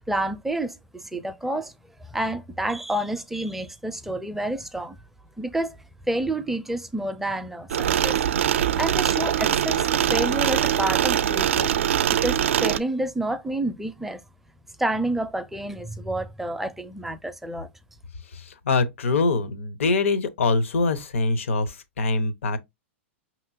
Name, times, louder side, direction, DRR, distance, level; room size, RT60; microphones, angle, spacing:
voice 1, 0.1-1.7 2.0-5.0 5.4-5.8 6.0-8.2 8.8-11.7 12.1-14.2 14.8-17.7, right 1 dB, 5° right, 0.4 m, -29 dB
sound 1, 7.7-12.8, right 10 dB, 75° right, 0.4 m, -22 dB
voice 2, 18.3-22.6, left 3 dB, 75° left, 0.7 m, -24 dB
5.3 x 2.9 x 2.5 m
hypercardioid pair, 115°, 7 cm